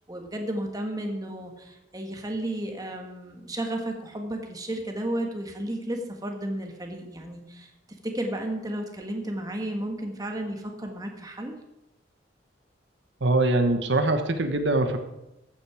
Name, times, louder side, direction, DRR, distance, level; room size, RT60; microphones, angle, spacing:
voice 1, 0.1-7.7 8.0-11.5, right 1 dB, 20° right, 3 dB, 1.6 m, -33 dB
voice 2, 13.2-15.0, right 2 dB, 70° right, 6 dB, 1.3 m, -23 dB
14.5 x 9.0 x 4.9 m, 0.93 s
head